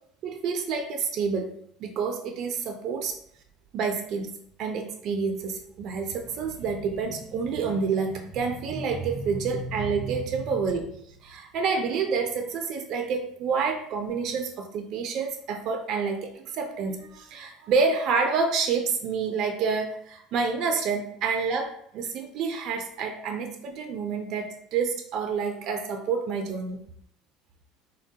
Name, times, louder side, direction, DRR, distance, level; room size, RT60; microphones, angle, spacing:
voice 1, 0.2-1.5 1.8-3.2 3.7-4.3 4.6-10.9 11.2-26.9, right 5 dB, 55° right, 4 dB, 0.4 m, -28 dB
3.5 x 2.2 x 2.7 m, 0.70 s
supercardioid pair, 90°, 0 cm